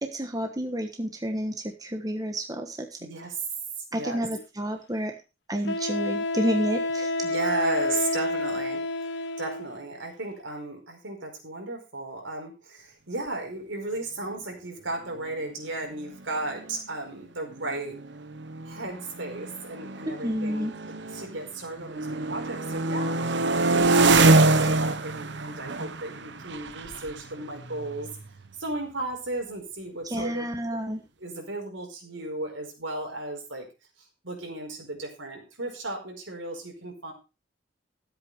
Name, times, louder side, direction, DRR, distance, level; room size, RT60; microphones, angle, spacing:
voice 1, 0.0-3.0 3.9-5.1 5.5-7.1 20.2-20.7 30.0-31.0, equal, 20° right, 4 dB, 1.3 m, -30 dB
voice 2, 3.0-3.4 3.9-4.2 7.2-9.1 9.4-18.0 18.6-23.2 23.4-28.1 28.6-30.5 31.0-33.6 34.2-37.1, right 2 dB, 80° right, 2 dB, 4.9 m, -35 dB
Wind instrument woodwind instrument, 4.4-4.5 5.7-9.7, left 2 dB, 60° left, 1.1 m, -29 dB
sound 1, 16.1-16.2 16.4-16.8 17.5-21.5 21.8-28.5, right 3 dB, 60° right, 1.0 m, -25 dB
13.5 x 8.1 x 4.9 m, 0.30 s
head